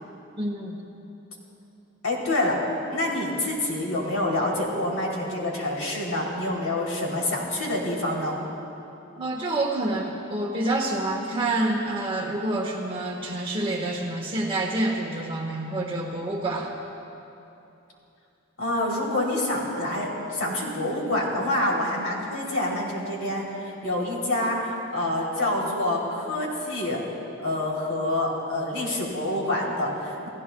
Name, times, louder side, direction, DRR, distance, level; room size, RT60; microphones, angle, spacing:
voice 1, 0.3-0.8 9.2-16.7, right 2 dB, 25° right, -1 dB, 1.3 m, -27 dB
voice 2, 2.0-2.6 2.9-8.3 18.6-27.0 27.4-30.3, left 1 dB, 75° left, -3 dB, 3.2 m, -27 dB
29.5 x 15.5 x 2.3 m, 2.9 s
head